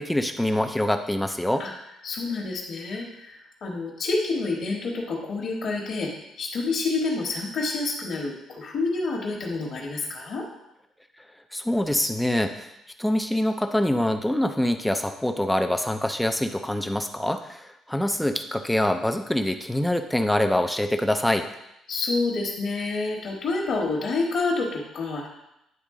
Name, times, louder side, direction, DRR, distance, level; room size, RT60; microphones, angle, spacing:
voice 1, 0.0-1.6 11.5-12.7 13.0-21.5, left 1 dB, 5° left, 6 dB, 0.4 m, -25 dB
voice 2, 2.0-6.1 6.4-10.5 21.9-25.3, left 3 dB, 45° left, -3 dB, 1.2 m, -28 dB
9.7 x 3.7 x 3.7 m, 0.84 s
cardioid pair, 165°, 0 cm